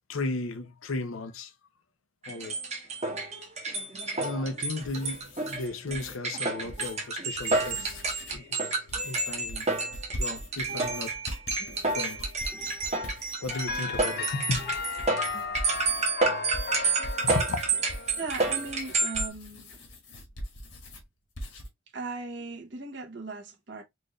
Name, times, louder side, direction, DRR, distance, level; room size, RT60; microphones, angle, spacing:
voice 1, 0.1-1.5 2.3-2.6 4.2-8.0 8.3-8.7 9.0-9.7 10.1-11.1 11.9-12.3 13.4-14.8 16.8-17.6, left 2 dB, 85° left, 0.7 m, -35 dB
sound 1, 2.2-19.3, right 3 dB, 30° right, 1.1 m, -30 dB
sound 2, 4.6-6.2 6.6-6.9 7.3-8.5 8.9-16.1 16.5-21.0 21.4-21.7, equal, 65° left, 1.3 m, -42 dB
sound 3, 13.5-19.0, left 4 dB, 50° left, 0.5 m, -36 dB
voice 2, 18.1-19.8 21.9-23.8, right 3 dB, 60° right, 1.2 m, -38 dB
4.4 x 2.5 x 3.1 m
head